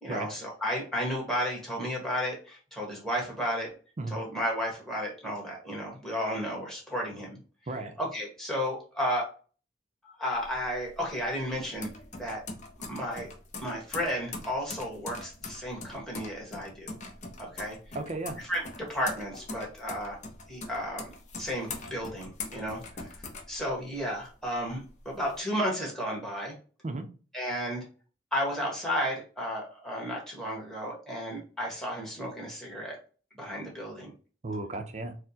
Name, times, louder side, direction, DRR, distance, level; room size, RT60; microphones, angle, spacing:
voice 1, 0.0-3.7 4.1-7.4 8.0-9.3 10.0-11.9 12.1-12.4 12.9-13.3 13.6-17.0 17.4-17.8 18.5-20.2 20.5-21.1 21.4-23.2 23.5-26.5 27.3-27.8 28.3-33.0 33.3-34.1, equal, 5° left, -2 dB, 1.2 m, -33 dB
sound 1, 10.3-24.2 24.6-25.4, left 3 dB, 40° left, 0.6 m, -42 dB
voice 2, 17.9-18.4 26.8-27.1 34.4-35.2, right 2 dB, 40° right, 6 dB, 0.5 m, -34 dB
4.3 x 2.1 x 2.7 m, 0.37 s
head